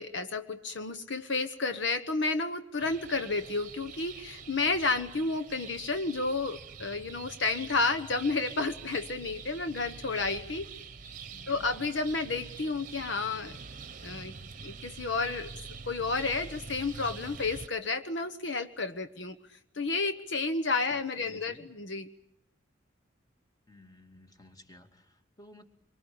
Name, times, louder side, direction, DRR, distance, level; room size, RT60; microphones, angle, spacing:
voice 1, 0.0-10.6 11.5-13.6 14.0-14.3 14.6-15.5 15.8-19.3 19.7-22.1, left 3 dB, 65° left, 8 dB, 1.2 m, -31 dB
sound 1, 2.8-17.7, right 5 dB, 40° right, 1.1 m, -45 dB
voice 2, 11.3-11.8 20.9-21.7 23.7-25.7, left 1 dB, 20° left, 5 dB, 2.5 m, -55 dB
25.5 x 24.5 x 8.8 m, 0.76 s
head